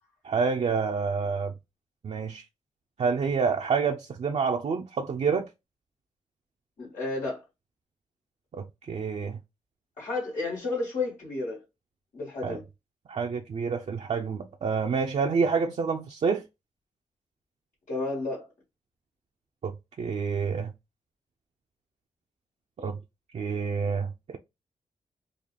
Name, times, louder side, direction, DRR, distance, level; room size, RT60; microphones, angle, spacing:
voice 1, 0.2-1.5 2.0-2.4 3.0-5.5 8.5-9.4 12.4-12.6 13.1-16.4 19.6-19.7 20.0-20.7 22.8-23.0 23.3-24.4, right 5 dB, 60° right, 0.5 m, -28 dB
voice 2, 6.8-7.4 10.0-11.6 12.1-12.6 17.9-18.5, left 3 dB, 85° left, 1.8 m, -31 dB
3.7 x 2.3 x 3.2 m
cardioid pair, 80°, 13 cm